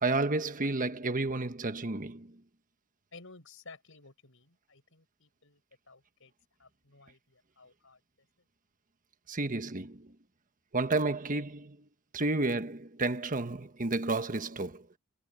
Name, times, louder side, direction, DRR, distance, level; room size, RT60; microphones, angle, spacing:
voice 1, 0.0-2.4 9.3-10.1 10.7-11.8 12.1-14.9, right 2 dB, 40° right, 1.3 m, -31 dB
voice 2, 3.1-6.3 6.6-8.0, left 3 dB, 65° left, 7.3 m, -55 dB
head